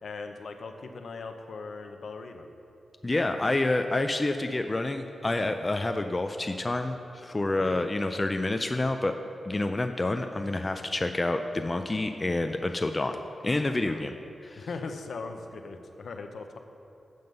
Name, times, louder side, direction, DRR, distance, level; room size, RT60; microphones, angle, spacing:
voice 1, 0.0-2.5 7.5-7.8 13.8-14.1 14.6-16.6, left 4 dB, 65° left, 6 dB, 0.6 m, -39 dB
voice 2, 3.0-9.1 9.4-13.2 13.4-14.1 14.4-14.7, left 2 dB, 20° left, 6 dB, 0.3 m, -28 dB
7.7 x 5.3 x 6.6 m, 2.8 s
wide cardioid pair, 135°, 0 cm